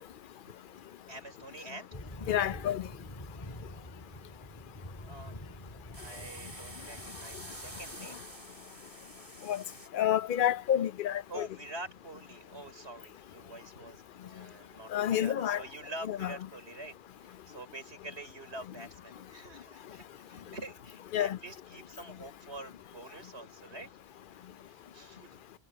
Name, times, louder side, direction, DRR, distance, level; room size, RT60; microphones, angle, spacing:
voice 1, 1.1-1.9 5.0-5.4 5.9-8.2 8.7-9.0 11.3-17.0 17.2-24.0 24.6-25.4, right 2 dB, 70° right, 5.4 m, -46 dB
sound 1, 1.9-8.0, left 1 dB, 25° left, 3.9 m, -47 dB
voice 2, 2.3-2.9 9.5-9.6 9.9-11.5 14.9-15.6 16.1-16.3 21.1-21.4, left 11 dB, 60° left, 0.6 m, -29 dB
sound 2, 5.9-9.9, right 2 dB, 30° right, 2.7 m, -48 dB
omnidirectional pair, 1.1 m